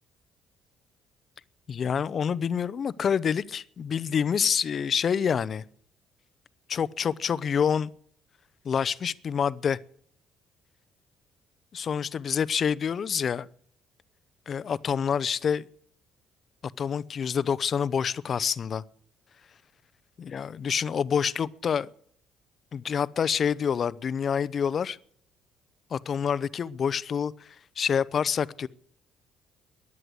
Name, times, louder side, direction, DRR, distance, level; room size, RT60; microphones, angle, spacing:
voice 1, 1.7-5.6 6.7-7.9 8.6-9.8 11.7-13.5 14.5-15.6 16.8-18.8 20.2-21.9 22.7-25.0 25.9-27.5 27.8-28.7, left 7 dB, 50° left, 0.7 m, -27 dB
16.0 x 11.0 x 8.0 m
supercardioid pair, 80°, 0 cm